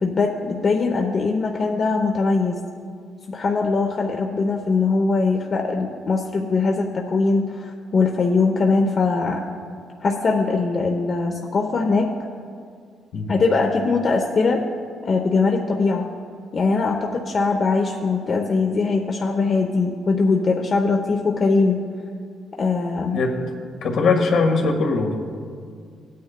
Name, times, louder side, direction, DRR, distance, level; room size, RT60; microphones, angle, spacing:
voice 1, 0.0-2.6 3.3-9.4 10.0-12.1 13.3-14.6 15.0-16.1 16.5-21.8 22.6-23.2, left 4 dB, 45° left, 1 dB, 0.8 m, -21 dB
voice 2, 23.1-23.5 23.8-25.2, left 4 dB, 70° left, 2 dB, 1.5 m, -20 dB
17.5 x 9.3 x 2.2 m, 2.1 s
cardioid pair, 90°, 0 cm